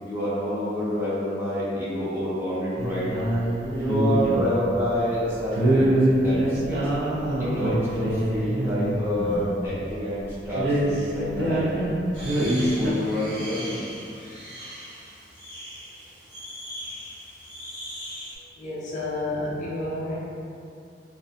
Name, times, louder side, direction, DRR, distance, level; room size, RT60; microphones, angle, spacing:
voice 1, 0.0-3.1 3.7-6.9 7.4-11.8 12.4-13.8, equal, 15° right, -10 dB, 0.6 m, -28 dB
sound 1, 2.8-4.6 5.5-9.5 9.9-10.0 10.3-11.9 12.2-12.9, right 1 dB, 65° right, 0.5 m, -24 dB
sound 2, 12.1-18.4, equal, 80° right, 1.1 m, -39 dB
voice 2, 18.6-20.2, left 2 dB, 45° left, -6 dB, 0.5 m, -30 dB
2.6 x 2.1 x 2.5 m, 2.6 s
head